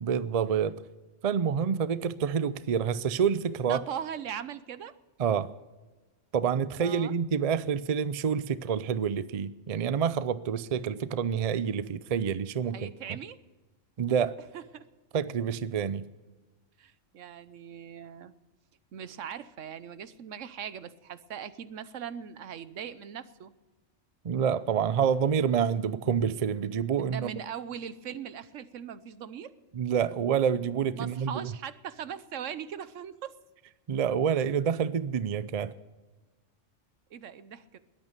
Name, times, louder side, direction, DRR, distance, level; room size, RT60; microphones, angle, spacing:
voice 1, 0.0-0.8 1.2-3.8 5.2-5.5 6.3-13.2 14.0-14.4 15.1-16.0 24.2-27.4 29.7-31.5 33.9-35.7, right 7 dB, 45° right, 0.5 m, -28 dB
voice 2, 3.6-4.9 6.8-7.1 12.6-13.4 14.5-14.8 16.8-18.3 18.9-23.5 27.0-29.5 31.0-33.3 37.1-37.8, right 8 dB, 75° right, 1.1 m, -40 dB
21.0 x 9.1 x 6.7 m
omnidirectional pair, 1.3 m